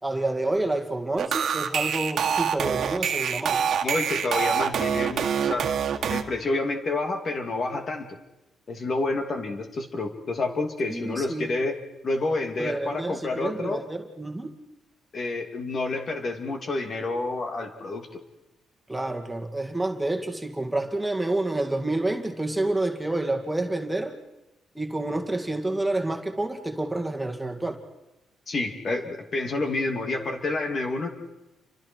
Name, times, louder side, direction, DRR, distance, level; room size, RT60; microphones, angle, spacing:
voice 1, 0.0-3.6 10.9-11.5 12.6-14.5 18.9-24.2 24.8-27.8, right 2 dB, 10° right, 4 dB, 2.2 m, -28 dB
sound 1, 1.2-6.2, right 7 dB, 60° right, 1.8 m, -25 dB
voice 2, 3.8-5.7 6.1-8.2 8.7-11.8 12.0-13.8 15.1-18.2 28.5-31.1, left 2 dB, 45° left, 4 dB, 2.7 m, -29 dB
29.5 x 25.0 x 4.7 m, 0.97 s
cardioid pair, 90°, 0 cm